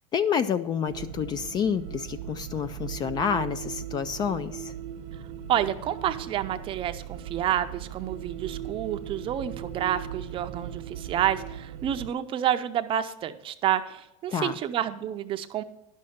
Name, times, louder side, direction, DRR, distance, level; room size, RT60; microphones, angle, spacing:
voice 1, 0.1-4.7 14.3-14.5, left 7 dB, 25° left, 13 dB, 0.3 m, -28 dB
sound 1, 0.9-12.1, right 10 dB, 70° right, 0.7 m, -38 dB
voice 2, 5.5-15.6, right 10 dB, 30° right, 9 dB, 0.5 m, -29 dB
11.0 x 6.4 x 5.7 m, 0.86 s
supercardioid pair, 140°, 17 cm